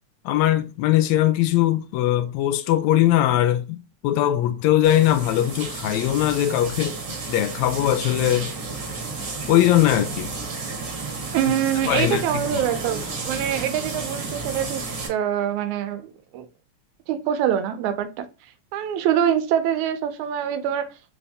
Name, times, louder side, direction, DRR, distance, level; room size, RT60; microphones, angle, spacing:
voice 1, 0.3-8.5 9.5-10.3 11.8-12.6, left 13 dB, 80° left, 1.7 m, -21 dB
sound 1, 4.8-15.1, right 4 dB, 55° right, 1.3 m, -32 dB
voice 2, 11.3-14.8 15.1-16.5 17.1-18.3 18.7-20.9, right 9 dB, 85° right, 2.0 m, -24 dB
4.6 x 2.6 x 3.4 m
omnidirectional pair, 3.3 m